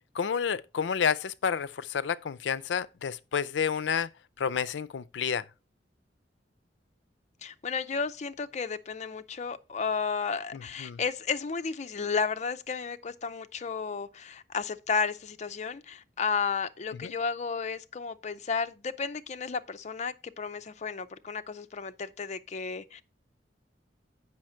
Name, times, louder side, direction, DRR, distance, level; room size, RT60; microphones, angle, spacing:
voice 1, 0.1-4.1 4.4-5.4 10.5-11.0 17.0-17.1, left 7 dB, 90° left, 0.4 m, -30 dB
voice 2, 7.4-23.0, left 5 dB, 40° left, 0.5 m, -33 dB
7.5 x 5.7 x 4.4 m
head